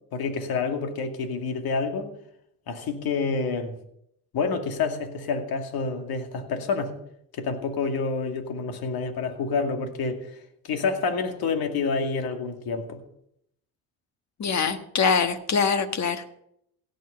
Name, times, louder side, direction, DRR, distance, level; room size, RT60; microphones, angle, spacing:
voice 1, 0.1-2.1 2.7-3.8 4.3-6.9 7.3-10.3 10.6-13.0, left 4 dB, 65° left, 5 dB, 2.3 m, -28 dB
voice 2, 14.4-16.3, left 5 dB, 45° left, 8 dB, 1.6 m, -24 dB
16.5 x 6.6 x 6.7 m, 0.74 s
supercardioid pair, 65°, 40 cm